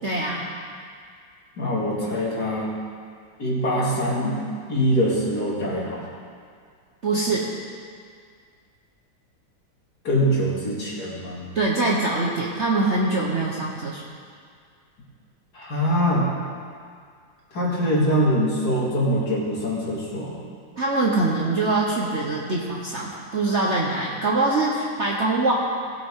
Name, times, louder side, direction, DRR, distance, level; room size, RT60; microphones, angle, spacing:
voice 1, 0.0-0.5 7.0-7.5 11.5-14.0 20.8-25.5, right 2 dB, 45° right, -4 dB, 1.1 m, -23 dB
voice 2, 1.6-2.7 3.4-4.4 4.7-6.0 10.0-11.5 15.5-16.3 17.5-20.3, equal, 50° left, -5 dB, 2.7 m, -23 dB
18.5 x 8.0 x 3.7 m, 2.1 s
omnidirectional pair, 2.2 m